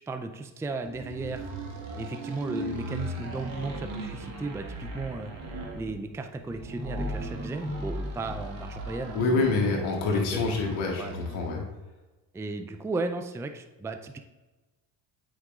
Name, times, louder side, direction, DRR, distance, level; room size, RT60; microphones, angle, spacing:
voice 1, 0.1-1.5 1.9-9.5 10.3-10.4 11.0-11.1 12.3-14.2, right 3 dB, 5° right, 7 dB, 0.4 m, -35 dB
sound 1, 0.9-11.6, right 1 dB, 75° right, 1.7 m, -37 dB
voice 2, 9.1-11.6, left 3 dB, 70° left, -1 dB, 1.9 m, -26 dB
8.3 x 5.3 x 2.5 m, 1.2 s
supercardioid pair, 65°, 50 cm